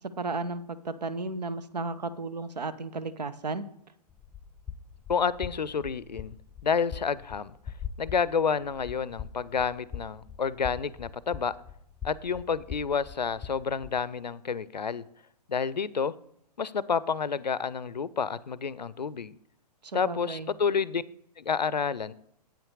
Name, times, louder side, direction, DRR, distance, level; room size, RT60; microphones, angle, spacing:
voice 1, 0.2-3.6 19.8-20.5, right 3 dB, 80° right, 13 dB, 0.7 m, -34 dB
sound 1, 4.1-14.0, left 7 dB, 10° left, 0.5 m, -43 dB
voice 2, 5.1-6.3 6.6-7.5 8.0-11.5 12.0-15.0 15.5-16.1 16.6-19.3 19.9-21.0 21.4-22.1, left 6 dB, 90° left, 19 dB, 0.5 m, -29 dB
8.7 x 5.9 x 4.7 m, 0.74 s
figure-of-eight pair, 110°, 21 cm